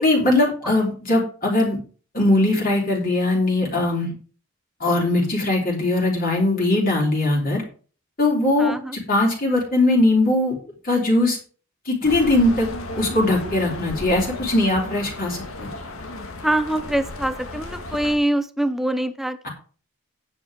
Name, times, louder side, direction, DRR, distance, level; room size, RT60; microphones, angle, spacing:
voice 1, 0.0-1.8 2.1-4.1 4.8-7.6 8.2-10.6 10.8-11.4 11.8-12.7 13.0-15.7 19.4-19.5, left 2 dB, 40° left, -2 dB, 3.1 m, -20 dB
voice 2, 8.6-9.0 16.4-19.5, right 1 dB, ahead, 11 dB, 0.6 m, -24 dB
sound 1, 12.0-18.2, left 2 dB, 70° left, 1.8 m, -34 dB
9.6 x 7.5 x 4.7 m, 0.40 s
head